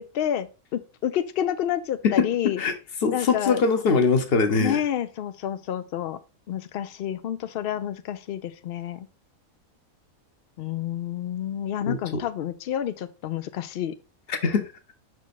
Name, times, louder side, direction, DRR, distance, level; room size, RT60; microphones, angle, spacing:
voice 1, 0.0-2.6 3.1-3.6 4.6-6.2 6.5-9.1 10.6-13.9, left 10 dB, 80° left, 0.5 m, -29 dB
voice 2, 2.0-2.7 3.0-4.8 11.9-12.2 14.3-14.7, left 4 dB, 45° left, 1.0 m, -22 dB
5.9 x 4.5 x 4.1 m
omnidirectional pair, 1.5 m